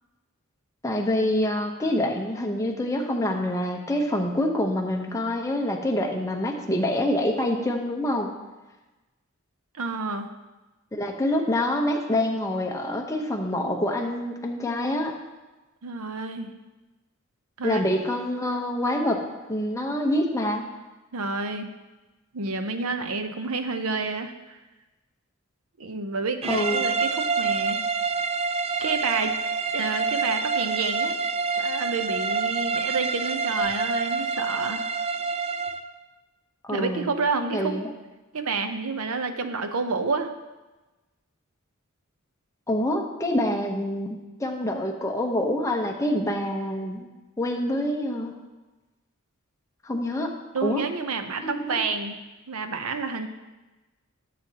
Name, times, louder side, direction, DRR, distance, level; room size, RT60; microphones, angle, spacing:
voice 1, 0.8-8.3 10.9-15.1 17.6-19.2 19.5-20.6 26.5-26.9 36.6-37.1 37.5-37.9 42.7-47.1 47.4-48.3 49.8-50.3 50.6-50.8 51.4-51.8, left 1 dB, 15° left, 1 dB, 1.0 m, -26 dB
voice 2, 9.8-10.3 15.8-16.5 17.6-17.8 21.1-21.7 22.3-24.6 25.8-27.8 28.8-29.4 29.7-31.1 31.6-34.9 36.7-37.8 38.3-40.3 50.5-52.2 52.5-53.3, right 4 dB, 85° right, 8 dB, 0.7 m, -29 dB
sound 1, 26.4-35.9, right 4 dB, 30° right, 0.3 m, -27 dB
13.5 x 7.5 x 2.9 m, 1.1 s
head